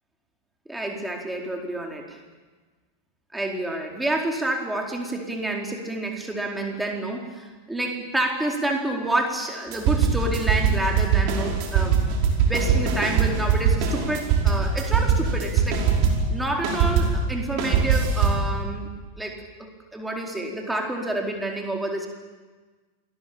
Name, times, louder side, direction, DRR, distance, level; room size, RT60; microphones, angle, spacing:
voice 1, 0.7-2.2 3.3-12.0 12.5-15.8 16.3-22.1, right 1 dB, 5° right, 1 dB, 4.5 m, -29 dB
sound 1, 9.7-16.3 16.6-18.5, right 6 dB, 45° right, 5.3 m, -21 dB
27.0 x 21.0 x 8.8 m, 1.3 s
figure-of-eight pair, 90°, 0 cm